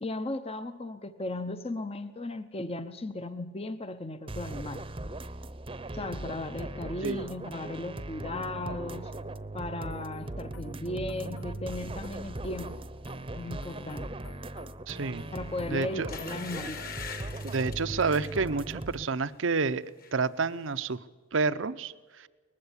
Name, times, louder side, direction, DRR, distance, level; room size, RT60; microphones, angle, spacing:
voice 1, 0.0-4.8 5.9-9.1 9.5-12.8 13.3-14.1 15.3-16.8, left 2 dB, 30° left, 10 dB, 0.7 m, -36 dB
sound 1, 4.3-19.0, right 2 dB, 25° right, 0.8 m, -39 dB
sound 2, 9.8-17.2, left 1 dB, 70° left, 2.2 m, -53 dB
voice 2, 14.9-15.2 15.7-16.1 17.4-19.8 20.1-21.0 21.3-22.3, right 4 dB, 65° right, 14 dB, 0.7 m, -29 dB
sound 3, 15.4-15.6 16.1-18.4 18.9-19.1 19.4-20.1 20.4-20.5, left 6 dB, 45° left, 1.8 m, -43 dB
20.0 x 15.0 x 9.9 m, 1.4 s
head